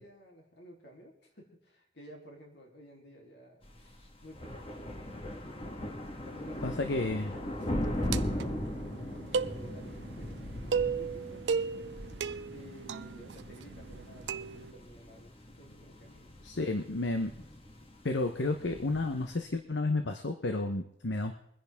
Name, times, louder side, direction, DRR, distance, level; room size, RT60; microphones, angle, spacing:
voice 1, 0.0-5.6 6.2-11.9 12.5-16.3, equal, 65° left, 0 dB, 3.3 m, -53 dB
sound 1, 3.6-19.4, left 1 dB, 30° left, 1.6 m, -39 dB
voice 2, 6.6-7.3 16.4-17.3 18.0-21.3, left 2 dB, 80° left, 6 dB, 1.0 m, -31 dB
sound 2, 7.6-14.7, right 5 dB, 75° right, 0.5 m, -36 dB
23.5 x 10.5 x 3.6 m, 0.72 s
head